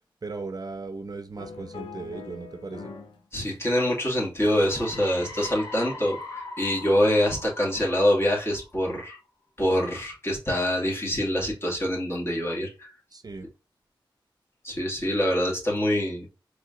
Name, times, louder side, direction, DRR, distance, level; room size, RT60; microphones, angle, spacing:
voice 1, 0.2-2.9 13.1-13.5, right 3 dB, 50° right, 8 dB, 0.6 m, -37 dB
sound 1, 1.4-3.2 3.5-5.1 5.6-5.9, left 4 dB, 85° left, 0.7 m, -43 dB
voice 2, 3.3-9.2 9.6-12.9 14.6-16.3, equal, 30° left, -3 dB, 2.2 m, -25 dB
sound 2, 4.4-9.0, left 3 dB, 55° left, 1.7 m, -41 dB
4.9 x 3.3 x 2.5 m, 0.32 s
cardioid pair, 50°, 9 cm